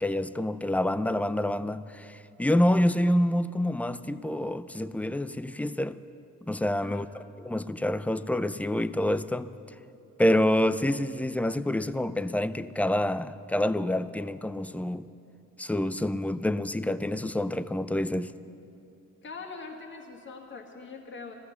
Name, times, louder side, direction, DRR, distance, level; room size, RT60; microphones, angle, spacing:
voice 1, 0.0-6.0 6.5-7.1 7.4-9.5 10.2-15.1 15.6-18.3, left 1 dB, 5° left, 0.4 m, -27 dB
voice 2, 19.2-21.3, left 4 dB, 40° left, 1.9 m, -42 dB
14.0 x 14.0 x 7.1 m
cardioid pair, 90°, 30 cm